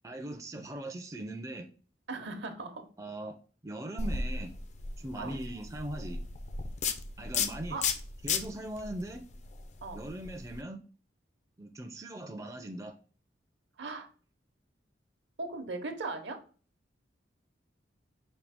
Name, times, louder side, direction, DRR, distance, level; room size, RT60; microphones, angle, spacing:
voice 1, 0.0-1.7 3.0-3.4 3.6-4.5 5.0-6.2 7.2-7.8 8.2-9.2 9.9-10.8 11.6-12.9, right 1 dB, 15° right, 4 dB, 0.4 m, -40 dB
voice 2, 2.1-2.8 5.2-5.3 7.7-7.8 9.8-10.0 13.8-14.1 15.4-16.4, right 3 dB, 70° right, 6 dB, 0.8 m, -38 dB
sound 1, 4.0-10.6, left 5 dB, 40° left, 0.4 m, -35 dB
5.2 x 2.7 x 3.4 m, 0.38 s
head